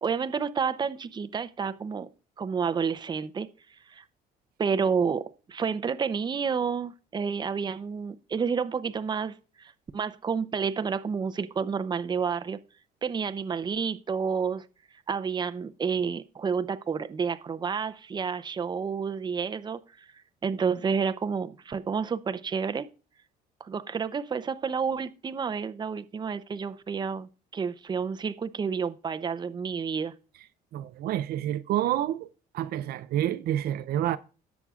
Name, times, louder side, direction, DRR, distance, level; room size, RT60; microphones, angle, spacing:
voice 1, 0.0-2.1 2.4-3.5 3.9-4.0 4.6-12.6 13.0-14.6 15.1-19.8 20.4-22.9 23.6-30.1, right 6 dB, 25° right, 0.6 m, -30 dB
voice 2, 30.7-32.3 32.5-34.2, right 12 dB, 65° right, 0.5 m, -28 dB
17.5 x 7.1 x 2.4 m
cardioid pair, 110°, 17 cm